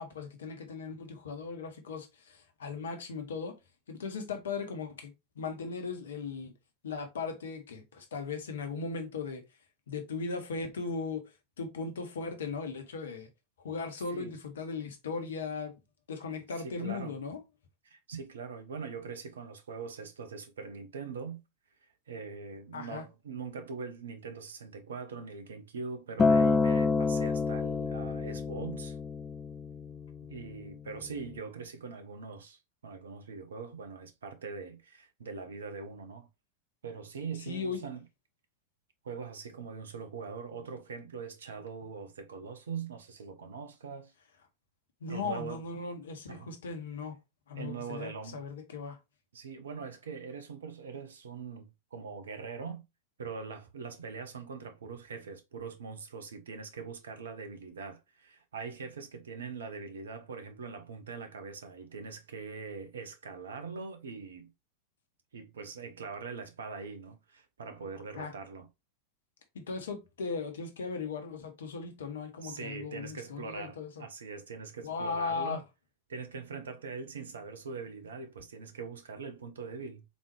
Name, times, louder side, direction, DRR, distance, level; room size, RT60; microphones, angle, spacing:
voice 1, 0.0-3.5 3.9-6.5 6.8-9.4 9.9-11.3 11.6-13.3 13.6-15.8 16.1-17.4 22.7-23.0 37.5-37.8 45.0-47.1 47.5-49.0 68.2-68.3 69.5-74.0 74.8-75.6, left 4 dB, 65° left, 1.0 m, -37 dB
voice 2, 16.6-17.1 17.8-21.4 21.8-29.0 30.3-36.3 36.8-38.0 39.0-44.1 45.1-45.6 46.3-46.5 47.5-48.4 49.3-52.8 53.2-64.5 65.3-68.7 72.4-75.6 76.1-80.0, right 5 dB, 65° right, 0.7 m, -42 dB
Acoustic guitar, 26.2-30.5 31.3-31.4, left 4 dB, 15° left, 0.4 m, -28 dB
4.1 x 3.6 x 3.1 m
figure-of-eight pair, 90°, 0 cm